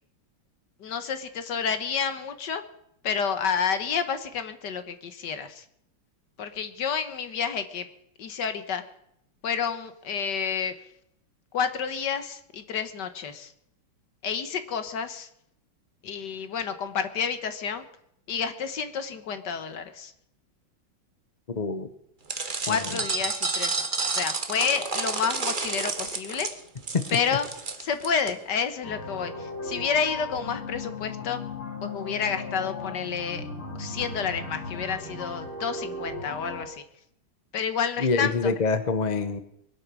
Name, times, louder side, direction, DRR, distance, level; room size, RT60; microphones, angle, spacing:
voice 1, 0.8-2.6 3.0-5.7 6.4-7.9 8.2-8.8 9.4-10.7 11.5-13.5 14.2-15.3 16.0-17.8 18.3-20.1 22.7-26.5 27.1-27.5 27.8-31.4 31.8-33.5 33.8-36.8 37.5-38.5, left 6 dB, 60° left, 10 dB, 1.7 m, -30 dB
voice 2, 21.5-21.9 22.7-22.8 26.9-27.1 38.0-39.4, left 4 dB, 35° left, 11 dB, 0.6 m, -25 dB
sound 1, 22.3-28.3, right 4 dB, 30° right, 1.2 m, -30 dB
sound 2, 28.8-36.7, left 3 dB, 75° left, 3.2 m, -37 dB
22.5 x 8.5 x 6.2 m, 0.74 s
omnidirectional pair, 2.3 m